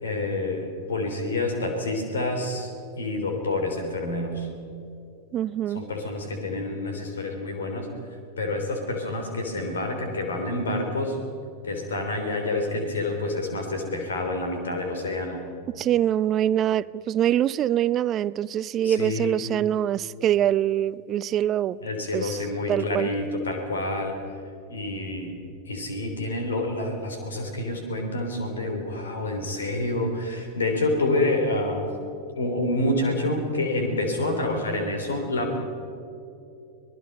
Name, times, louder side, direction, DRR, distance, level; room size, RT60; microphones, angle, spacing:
voice 1, 0.0-2.7 3.0-4.5 5.7-7.9 8.4-11.2 11.6-15.4 18.8-19.3 21.8-24.1 24.7-25.4 25.7-31.9 32.4-35.6, left 2 dB, 70° left, 3.5 m, -28 dB
voice 2, 5.3-5.9 15.7-21.8 22.1-22.4 22.7-23.1, right 11 dB, 30° right, 0.4 m, -24 dB
25.5 x 19.0 x 5.5 m
figure-of-eight pair, 90°, 0 cm